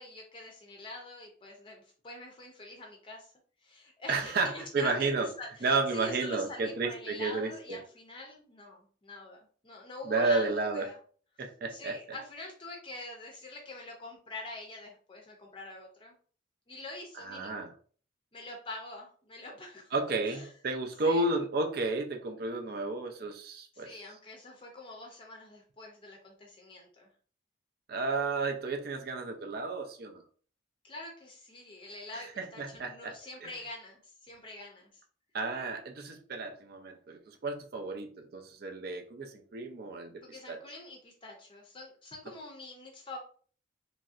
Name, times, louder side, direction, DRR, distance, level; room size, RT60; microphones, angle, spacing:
voice 1, 0.0-3.3 3.6-5.1 5.4-11.0 11.7-16.1 16.7-17.7 18.3-19.9 20.2-20.5 21.0-21.3 23.7-27.1 30.8-35.0 40.2-43.2, left 2 dB, 25° left, 0 dB, 0.5 m, -45 dB
voice 2, 4.1-5.3 5.6-7.8 10.0-10.9 11.4-12.0 17.2-17.7 19.9-23.9 27.9-30.2 32.1-33.1 33.4-33.5 35.3-40.6, right 3 dB, 55° right, 3 dB, 0.5 m, -32 dB
3.0 x 2.6 x 2.4 m, 0.43 s
head